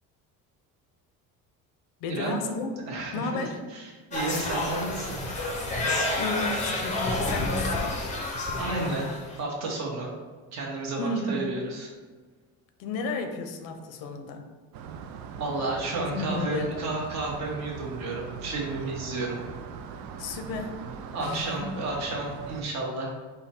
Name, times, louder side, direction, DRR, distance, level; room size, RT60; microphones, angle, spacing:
voice 1, 2.0-3.6 5.9-8.0 11.0-11.4 12.8-14.5 16.0-16.8 20.2-20.9 21.2-21.7, left 3 dB, 85° left, 6 dB, 0.7 m, -33 dB
voice 2, 2.9-3.4 3.7-5.2 8.6-10.1 10.5-11.9 15.4-19.4 21.1-23.2, right 2 dB, 50° right, -2 dB, 1.2 m, -32 dB
sound 1, 4.1-9.4, left 2 dB, 20° left, 0.5 m, -29 dB
sound 2, 14.7-22.6, right 6 dB, 85° right, 0.5 m, -40 dB
5.4 x 2.2 x 4.3 m, 1.5 s
cardioid pair, 175°, 35 cm